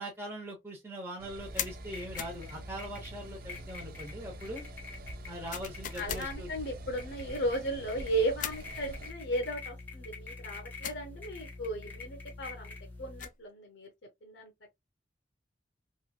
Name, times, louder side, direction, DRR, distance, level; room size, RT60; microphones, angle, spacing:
voice 1, 0.0-4.6 5.3-6.5, right 1 dB, 15° right, 0.8 m, -41 dB
sound 1, 1.2-9.1, right 3 dB, 50° right, 0.3 m, -48 dB
sound 2, 1.4-13.3, left 3 dB, 10° left, 1.0 m, -46 dB
sound 3, 1.6-1.8 2.2-2.4 5.5-6.3 8.4-8.7 10.8-11.1 12.9-13.4, left 10 dB, 45° left, 0.3 m, -38 dB
voice 2, 6.0-13.9 14.2-14.8, right 1 dB, 70° left, 0.8 m, -35 dB
3.0 x 2.4 x 2.2 m
head